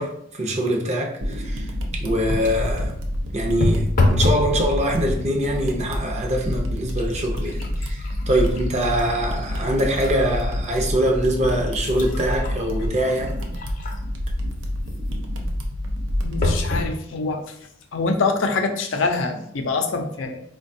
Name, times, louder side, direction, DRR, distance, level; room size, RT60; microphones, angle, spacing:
voice 1, 0.0-3.0 3.3-13.4, right 1 dB, 35° right, 0.6 m, -24 dB
sound 1, 1.2-16.6, left 1 dB, 90° right, 0.6 m, -28 dB
sound 2, 2.3-2.7 3.6-4.5 4.9-5.4 6.1-6.2 6.6-10.2 10.7-10.8 11.5-14.2 16.4-16.9 17.6-17.7 18.0-18.1, left 2 dB, 45° left, 0.5 m, -26 dB
voice 2, 16.2-17.6 17.9-20.4, left 3 dB, 90° left, 0.5 m, -25 dB
4.5 x 2.2 x 2.6 m
head